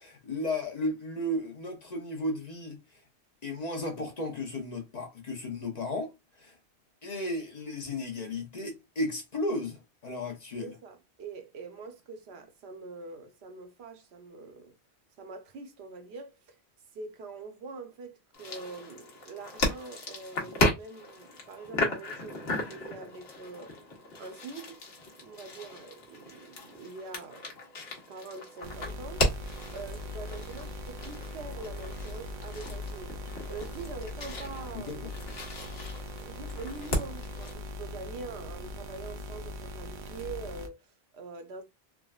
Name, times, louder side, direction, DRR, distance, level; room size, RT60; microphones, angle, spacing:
voice 1, 0.0-2.8 3.4-6.5 7.0-10.7 34.9-35.1, left 1 dB, 45° left, 0.7 m, -34 dB
voice 2, 10.6-14.7 15.2-16.6 16.9-23.8 24.2-27.5 28.1-29.3 29.7-33.2 33.5-35.1 36.2-41.6, right 4 dB, 75° right, 0.9 m, -44 dB
sound 1, 18.3-37.5, left 1 dB, 70° left, 1.1 m, -35 dB
sound 2, 28.6-40.7, left 1 dB, 60° right, 0.6 m, -40 dB
3.5 x 2.1 x 2.3 m
omnidirectional pair, 1.1 m